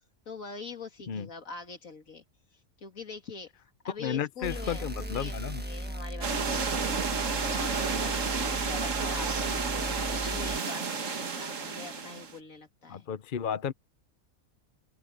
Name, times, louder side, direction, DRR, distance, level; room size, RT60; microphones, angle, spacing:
voice 1, 0.3-2.2 2.8-3.5 3.8-13.1, left 4 dB, 70° left, 3.0 m, -44 dB
voice 2, 4.0-5.6 12.9-13.7, left 8 dB, 45° left, 0.7 m, -33 dB
sound 1, 4.4-10.6, right 1 dB, 10° right, 1.1 m, -37 dB
sound 2, 6.2-12.3, right 5 dB, 60° right, 2.0 m, -31 dB
open air
omnidirectional pair, 1.5 m